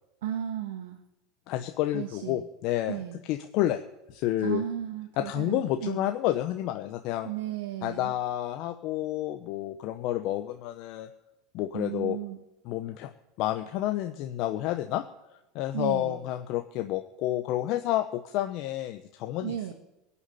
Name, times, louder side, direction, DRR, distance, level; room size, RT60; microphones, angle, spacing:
voice 1, 0.2-1.0 1.9-2.4 2.9-3.2 4.4-6.0 7.2-8.1 11.7-12.4 15.7-16.2 19.4-19.7, right 11 dB, 85° right, 5 dB, 1.5 m, -34 dB
voice 2, 1.5-3.0 3.3-3.8 4.1-4.6 5.2-7.3 7.8-11.1 11.5-12.2 12.6-13.1 13.4-15.0 15.5-19.7, left 14 dB, 60° left, 7 dB, 0.9 m, -30 dB
17.5 x 7.1 x 10.0 m, 0.96 s
hypercardioid pair, 105°, 0 cm